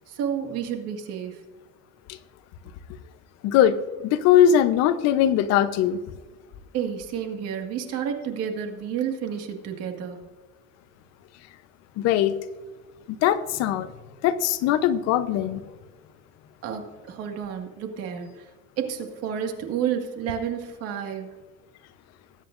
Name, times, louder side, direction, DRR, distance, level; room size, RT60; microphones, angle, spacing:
voice 1, 0.0-1.4 6.7-10.2 16.6-18.5 18.8-21.4, right 8 dB, 55° right, 4 dB, 1.9 m, -30 dB
voice 2, 3.4-6.0 12.0-12.3 13.2-13.9 14.2-15.6, left 10 dB, 60° left, 12 dB, 0.8 m, -20 dB
20.0 x 9.1 x 2.6 m, 1.3 s
cardioid pair, 160°, 30 cm